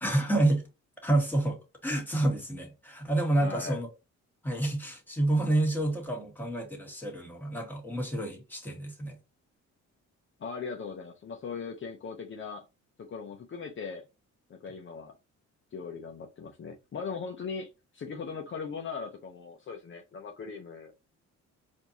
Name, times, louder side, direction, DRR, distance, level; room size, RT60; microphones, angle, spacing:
voice 1, 0.0-0.6 1.0-3.9 4.4-9.2, right 1 dB, 5° left, 1.7 m, -28 dB
voice 2, 3.4-3.8 10.4-12.7 13.0-14.0 14.5-15.1 15.7-20.9, left 5 dB, 40° left, 0.7 m, -39 dB
4.4 x 2.7 x 2.8 m
cardioid pair, 90°, 30 cm